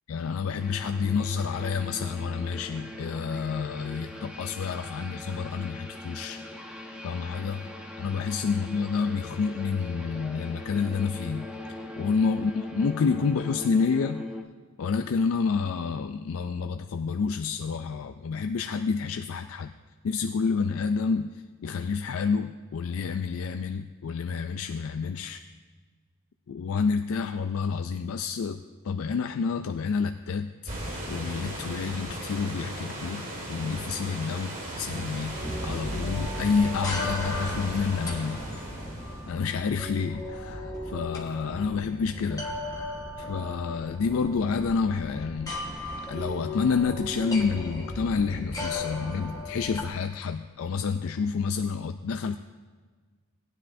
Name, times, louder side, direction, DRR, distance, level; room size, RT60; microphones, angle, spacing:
voice 1, 0.1-6.4 7.0-7.6 8.0-11.5 12.0-14.2 14.8-19.7 20.0-21.3 21.6-25.4 26.5-28.6 28.8-30.5 31.1-34.5 34.8-35.3 35.6-38.4 39.3-42.5 43.2-45.5 46.1-52.4, left 5 dB, 70° left, 8 dB, 0.4 m, -29 dB
sound 1, 0.6-14.4, left 2 dB, 5° right, 1.0 m, -40 dB
sound 2, 30.7-39.3, right 1 dB, 35° right, 1.8 m, -37 dB
sound 3, 35.3-49.9, left 1 dB, 15° left, 1.3 m, -36 dB
17.5 x 9.9 x 2.6 m, 1.5 s
head